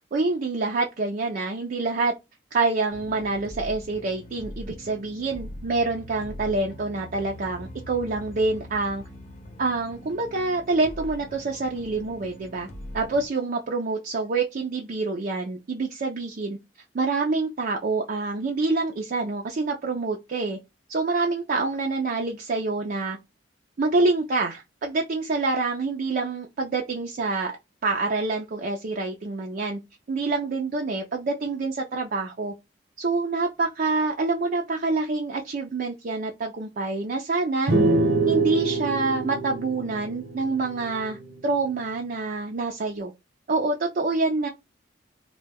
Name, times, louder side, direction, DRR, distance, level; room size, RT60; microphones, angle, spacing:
voice 1, 0.1-2.1 2.5-9.0 9.6-12.7 12.9-16.6 16.9-20.6 20.9-23.2 23.8-27.6 27.8-29.8 30.1-32.5 33.0-37.7 38.3-43.1 43.5-44.5, right 3 dB, 50° right, 0.4 m, -26 dB
sound 1, 2.9-13.3, left 1 dB, 35° left, 0.7 m, -42 dB
sound 2, 37.7-41.2, right 3 dB, 70° right, 0.8 m, -24 dB
2.2 x 2.1 x 3.3 m
head